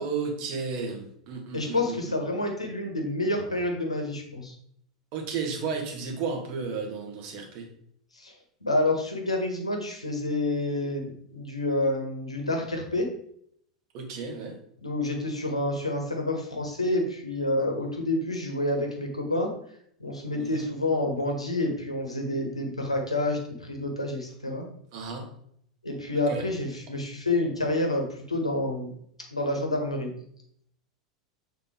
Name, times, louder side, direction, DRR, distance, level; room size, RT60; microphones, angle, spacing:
voice 1, 0.0-2.1 5.1-7.7 13.9-14.6 20.4-20.6 24.9-25.2 26.3-26.4, right 5 dB, 50° right, 2 dB, 1.6 m, -33 dB
voice 2, 1.5-4.5 8.1-8.3 8.6-13.1 14.8-19.5 20.0-24.6 25.8-28.9 29.3-30.1, left 2 dB, 85° left, 2 dB, 1.2 m, -28 dB
6.8 x 3.9 x 3.6 m, 0.67 s
figure-of-eight pair, 85°, 3 cm